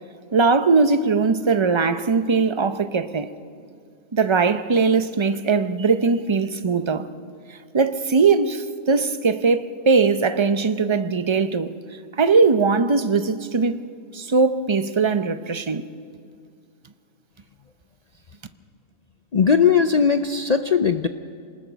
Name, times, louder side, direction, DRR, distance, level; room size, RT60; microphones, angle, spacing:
voice 1, 0.3-3.3 4.1-7.1 7.5-11.7 12.1-13.8 14.1-15.8, right 4 dB, 35° right, 0.5 m, -20 dB
voice 2, 19.3-21.1, left 6 dB, 55° left, 0.4 m, -18 dB
26.0 x 19.5 x 6.3 m
omnidirectional pair, 1.4 m